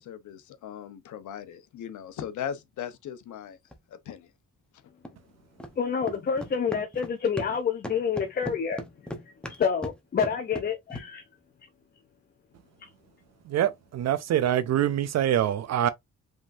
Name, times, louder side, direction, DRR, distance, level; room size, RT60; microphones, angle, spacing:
voice 1, 0.0-3.6 3.9-4.3, left 9 dB, 75° left, 0.9 m, -38 dB
sound 1, 2.1-2.3 3.7-3.8 5.0-5.1 5.6-5.7 6.0-7.6 7.8-11.1, equal, 5° left, 0.8 m, -38 dB
voice 2, 5.8-9.1 9.5-11.3 12.8-12.9, left 6 dB, 30° left, 0.6 m, -28 dB
voice 3, 13.4-15.9, right 11 dB, 60° right, 0.5 m, -25 dB
5.0 x 3.7 x 2.6 m
cardioid pair, 150°, 30 cm